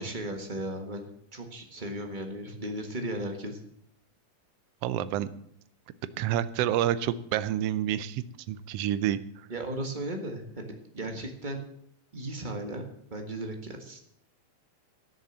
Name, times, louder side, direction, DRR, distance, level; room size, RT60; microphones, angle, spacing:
voice 1, 0.0-3.6 9.5-11.6 12.1-14.0, right 1 dB, 30° right, 3 dB, 0.9 m, -36 dB
voice 2, 4.8-5.3 6.2-9.2, right 11 dB, 75° right, 15 dB, 1.5 m, -28 dB
13.0 x 6.9 x 7.4 m, 0.71 s
omnidirectional pair, 3.3 m